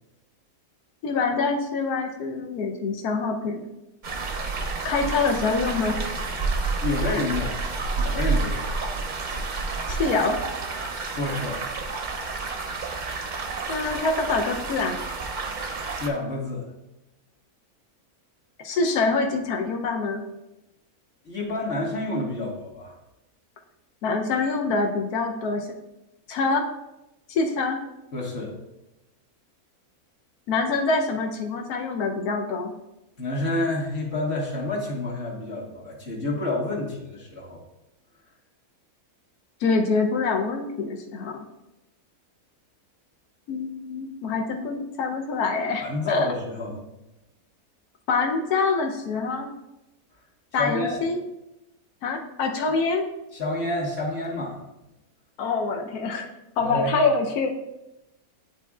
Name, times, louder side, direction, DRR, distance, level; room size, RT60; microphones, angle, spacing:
voice 1, 1.0-3.7 4.8-6.0 9.9-10.4 13.7-15.0 18.6-20.2 24.0-25.7 26.3-26.7 27.3-27.8 30.5-32.7 39.6-41.4 43.5-46.3 48.1-49.5 50.5-51.2 52.0-53.1 55.4-56.3 56.6-57.5, left 4 dB, 85° left, 3 dB, 1.3 m, -25 dB
sound 1, 4.0-16.1, right 4 dB, 45° right, 0.6 m, -29 dB
voice 2, 6.8-7.6 8.0-8.6 11.2-11.6 16.0-16.7 21.3-23.0 28.1-28.6 33.2-37.6 45.8-46.8 50.6-51.0 53.3-54.6 56.6-57.0, left 2 dB, 45° left, -3 dB, 1.7 m, -28 dB
11.0 x 4.2 x 2.3 m, 0.94 s
omnidirectional pair, 1.6 m